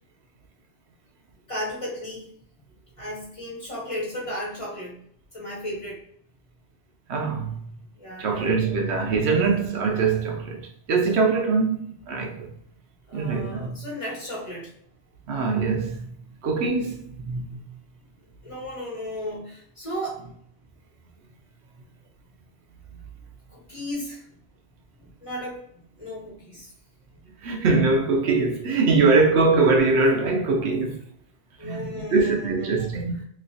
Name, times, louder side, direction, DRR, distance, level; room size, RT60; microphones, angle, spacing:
voice 1, 1.5-2.3 3.0-5.0 5.3-6.0 8.0-8.7 9.0-9.4 13.1-14.7 18.4-20.2 23.5-24.2 25.0-25.6 26.0-26.7 28.9-29.2 31.6-33.0, equal, 30° left, 1.2 m, -35 dB
voice 2, 7.1-7.6 8.2-12.5 13.1-13.8 15.3-16.0 16.4-17.6 27.4-31.0 31.6-33.1, right 4 dB, 75° right, 0.9 m, -22 dB
3.1 x 2.9 x 2.6 m
omnidirectional pair, 1.2 m